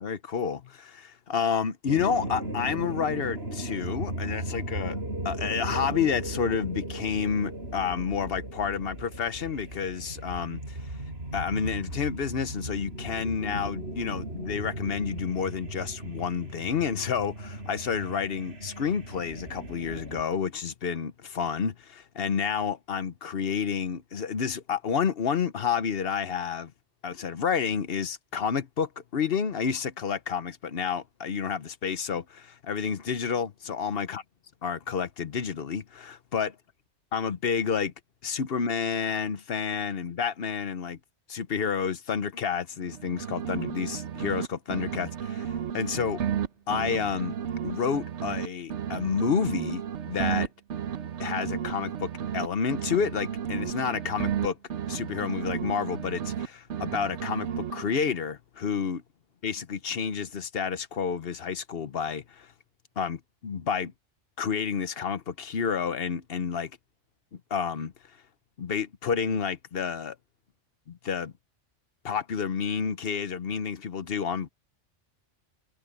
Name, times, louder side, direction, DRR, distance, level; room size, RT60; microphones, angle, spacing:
voice 1, 0.0-5.0 5.2-10.9 11.3-26.7 27.0-34.2 34.6-36.5 37.1-37.9 38.2-41.0 41.3-46.2 46.7-47.4 47.6-49.8 50.1-50.5 51.2-54.6 54.9-59.0 59.4-62.5 63.0-63.9 64.4-66.7 67.5-67.9 68.6-70.2 70.9-71.3 72.0-74.5, left 6 dB, 55° left, 1.1 m, -30 dB
sound 1, 1.9-20.2, right 1 dB, 60° right, 6.4 m, -36 dB
sound 2, 42.8-44.5 44.7-48.5 48.7-52.5 52.7-56.5 56.7-58.1, right 9 dB, 75° right, 1.2 m, -33 dB
omnidirectional pair, 1.2 m